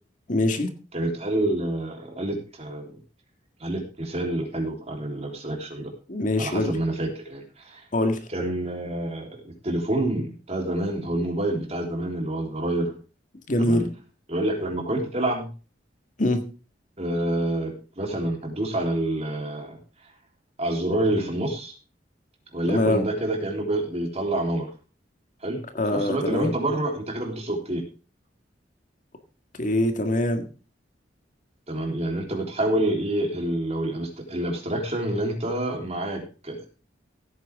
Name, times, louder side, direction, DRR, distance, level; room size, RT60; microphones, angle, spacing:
voice 1, 0.3-0.7 6.1-6.8 7.9-8.2 13.5-13.9 16.2-16.5 22.7-23.0 25.8-26.5 29.6-30.4, left 1 dB, 45° left, 7 dB, 1.8 m, -23 dB
voice 2, 0.9-2.9 3.6-5.9 6.4-7.8 8.3-9.3 9.6-12.9 13.6-13.9 14.3-15.5 17.0-19.8 20.6-21.7 22.5-24.7 25.4-25.6 25.9-27.8 31.7-36.7, right 1 dB, 35° right, 2 dB, 3.4 m, -27 dB
16.0 x 9.3 x 3.6 m, 0.35 s
head